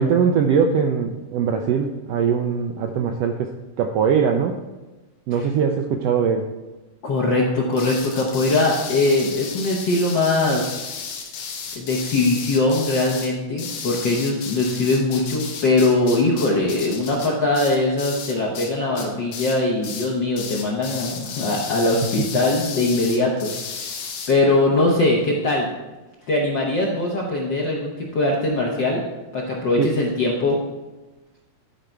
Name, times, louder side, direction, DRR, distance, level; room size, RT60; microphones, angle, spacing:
voice 1, 0.0-3.5 3.8-4.6 5.3-6.5 29.8-29.9, right 6 dB, 85° right, 4 dB, 1.4 m, -21 dB
voice 2, 7.0-10.7 11.7-23.5 24.3-25.7 26.3-29.0 29.3-30.6, left 2 dB, 65° left, -2 dB, 1.1 m, -21 dB
sound 1, 7.7-18.7 19.0-19.6 19.8-20.1 20.4-24.3, left 6 dB, 90° left, 2.6 m, -34 dB
12.0 x 5.0 x 4.5 m, 1.1 s
omnidirectional pair, 3.4 m